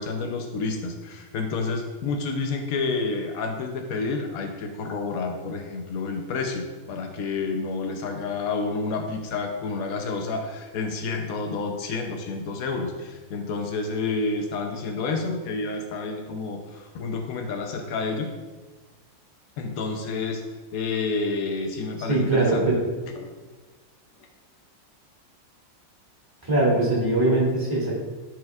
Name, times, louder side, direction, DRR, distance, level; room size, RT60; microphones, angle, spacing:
voice 1, 0.0-18.3 19.6-20.4 20.7-22.8 23.2-23.3, left 4 dB, 90° left, 4 dB, 0.7 m, -29 dB
voice 2, 22.1-22.7 26.4-28.0, right 2 dB, 10° right, -5 dB, 2.0 m, -21 dB
11.5 x 4.7 x 2.3 m, 1.3 s
omnidirectional pair, 2.2 m